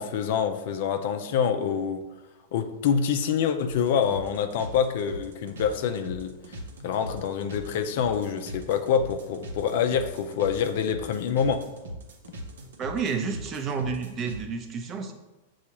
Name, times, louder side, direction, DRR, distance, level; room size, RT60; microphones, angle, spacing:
voice 1, 0.0-2.0 2.5-6.4 6.8-11.6, left 7 dB, 60° left, 8 dB, 0.4 m, -26 dB
sound 1, 3.7-14.4, right 1 dB, 75° right, 0.8 m, -40 dB
voice 2, 12.8-15.1, right 5 dB, 30° right, 5 dB, 0.6 m, -30 dB
7.0 x 2.3 x 2.9 m, 1.1 s
hypercardioid pair, 110°, 0 cm